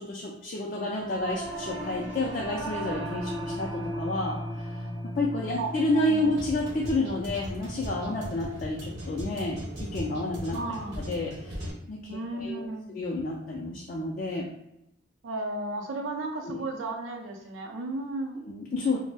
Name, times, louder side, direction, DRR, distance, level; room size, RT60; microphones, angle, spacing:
voice 1, 0.0-10.6 11.1-11.6 11.9-14.5 16.4-16.6 18.4-19.0, left 2 dB, 45° left, -2 dB, 0.3 m, -30 dB
Singing / Musical instrument, 1.0-10.6, equal, 10° right, 0.5 m, -38 dB
sound 1, 5.5-11.7, equal, 70° right, 0.8 m, -38 dB
voice 2, 10.5-11.0 12.1-13.0 15.2-18.4, right 2 dB, 85° right, 3 dB, 0.5 m, -34 dB
2.5 x 2.0 x 3.3 m, 0.84 s
head